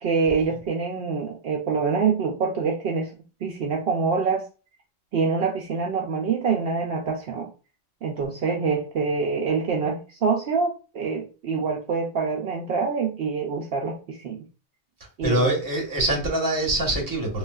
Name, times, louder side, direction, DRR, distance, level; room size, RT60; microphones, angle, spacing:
voice 1, 0.0-3.1 3.4-4.5 5.1-7.5 8.0-14.4 15.2-15.5, right 5 dB, 65° right, 0.7 m, -25 dB
voice 2, 15.0-17.4, right 1 dB, 20° right, 0.8 m, -24 dB
3.1 x 2.3 x 2.3 m
omnidirectional pair, 1.2 m